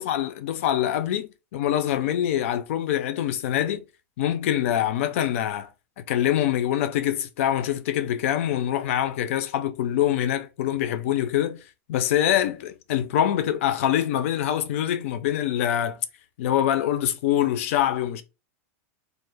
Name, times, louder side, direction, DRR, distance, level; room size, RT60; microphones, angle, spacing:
voice 1, 0.0-3.8 4.2-5.7 6.0-11.6 11.9-16.0 16.4-18.2, left 11 dB, 65° left, 0.4 m, -24 dB
2.1 x 2.0 x 3.2 m
supercardioid pair, 155°, 8 cm